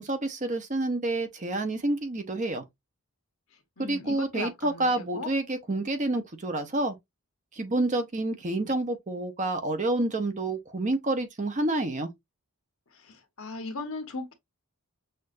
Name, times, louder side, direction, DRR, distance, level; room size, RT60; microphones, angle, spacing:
voice 1, 0.0-2.7 3.8-7.0 7.5-12.1, right 2 dB, 35° right, 0.7 m, -28 dB
voice 2, 3.8-5.3 13.1-14.3, left 3 dB, 65° left, 1.1 m, -37 dB
6.5 x 2.6 x 2.5 m
head